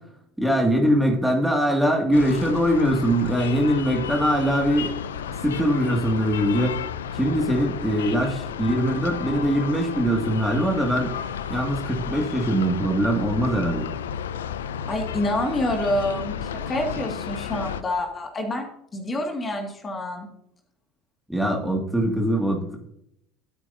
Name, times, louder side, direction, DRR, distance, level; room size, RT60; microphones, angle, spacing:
voice 1, 0.4-4.9 5.4-6.8 7.1-11.1 11.5-13.9 21.3-22.8, equal, 5° right, 0 dB, 2.3 m, -22 dB
sound 1, 2.1-17.8, left 8 dB, 85° left, 0.5 m, -32 dB
voice 2, 14.9-18.7 18.9-20.3, left 1 dB, 30° left, 2 dB, 2.2 m, -27 dB
12.5 x 8.8 x 2.8 m, 0.74 s
hypercardioid pair, 75°, 0 cm